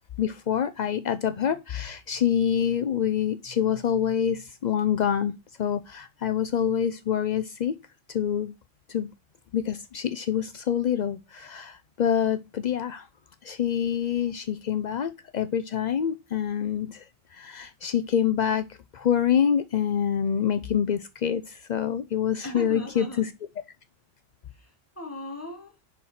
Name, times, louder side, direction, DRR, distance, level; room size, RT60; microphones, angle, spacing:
voice 1, 0.2-5.3 5.6-7.8 8.1-8.5 8.9-9.1 9.5-13.1 13.4-17.0 17.3-18.6 18.9-23.3, left 8 dB, 55° left, 0.5 m, -26 dB
voice 2, 22.4-23.3 24.5-25.8, left 1 dB, 10° left, 2.0 m, -39 dB
10.5 x 4.3 x 5.5 m
omnidirectional pair, 1.3 m